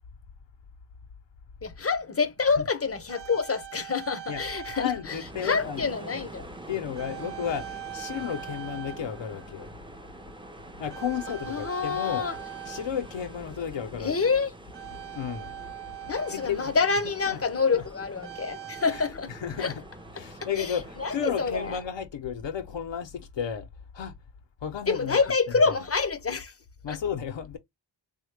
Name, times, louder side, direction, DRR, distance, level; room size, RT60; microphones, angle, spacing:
voice 1, 1.6-6.5 11.5-12.4 14.0-14.5 16.1-19.3 19.6-19.7 20.6-21.8 24.9-26.5 26.9-27.0, left 5 dB, 30° left, 0.6 m, -27 dB
sound 1, 1.7-1.8 2.7-5.3 5.5-5.8 7.0-9.7 10.0-10.4 10.9-13.6 14.7-17.1 18.2-19.1, right 11 dB, 65° right, 0.5 m, -42 dB
voice 2, 4.3-5.9 6.7-9.7 10.8-12.3 12.6-14.3 14.9-15.6 16.3-16.7 17.0-17.4 17.7-17.8 18.8-19.8 20.1-23.7 23.9-24.2 24.6-25.2 25.5-25.9 26.8-27.6, left 8 dB, 75° left, 0.6 m, -33 dB
sound 2, 5.1-21.7, right 2 dB, 10° right, 0.5 m, -45 dB
3.4 x 2.1 x 3.1 m
wide cardioid pair, 80°, 45 cm